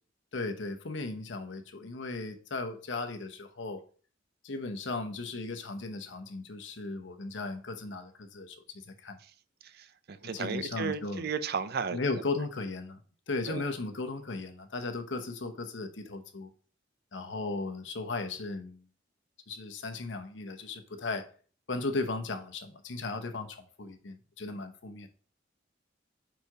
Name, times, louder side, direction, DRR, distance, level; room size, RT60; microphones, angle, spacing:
voice 1, 0.3-3.8 4.4-8.6 8.8-9.2 10.3-11.3 11.9-13.0 13.3-16.5 17.1-18.8 19.5-21.3 21.7-25.1, left 3 dB, 70° left, 0.9 m, -36 dB
voice 2, 9.6-12.0 13.5-13.7, right 5 dB, 55° right, 0.5 m, -34 dB
5.0 x 4.7 x 4.7 m
head